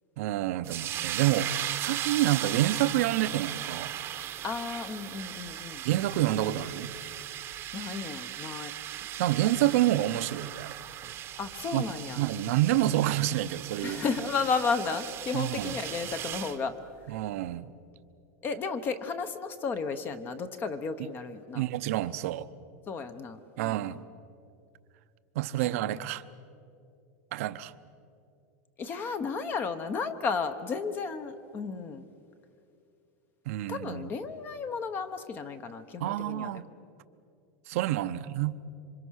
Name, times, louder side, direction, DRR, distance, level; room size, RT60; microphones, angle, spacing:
voice 1, 0.2-3.9 5.8-6.9 9.2-10.7 11.7-11.8 12.2-14.0 15.3-15.7 17.1-17.7 21.5-22.5 23.6-24.0 25.3-26.2 27.3-27.7 33.5-34.1 36.0-36.7 37.7-38.6, right 14 dB, 60° right, 13 dB, 0.8 m, -28 dB
sound 1, 0.6-16.6, right 12 dB, 25° right, 1.0 m, -37 dB
voice 2, 4.4-5.8 7.7-8.7 11.4-12.2 13.8-16.7 18.4-21.6 22.9-24.0 25.6-25.8 28.8-32.0 33.7-36.6, left 5 dB, 25° left, 10 dB, 0.9 m, -33 dB
27.0 x 25.0 x 6.4 m, 2.6 s
supercardioid pair, 160°, 9 cm